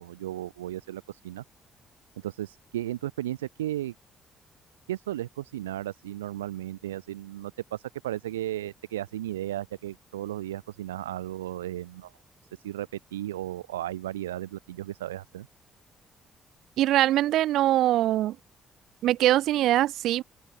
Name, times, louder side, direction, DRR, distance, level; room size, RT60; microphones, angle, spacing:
voice 1, 0.0-1.4 2.2-3.9 4.9-12.1 12.5-15.5, right 13 dB, 75° right, 1.6 m, -35 dB
voice 2, 16.8-18.4 19.0-20.2, right 14 dB, 60° right, 0.8 m, -22 dB
figure-of-eight pair, 40°, 0 cm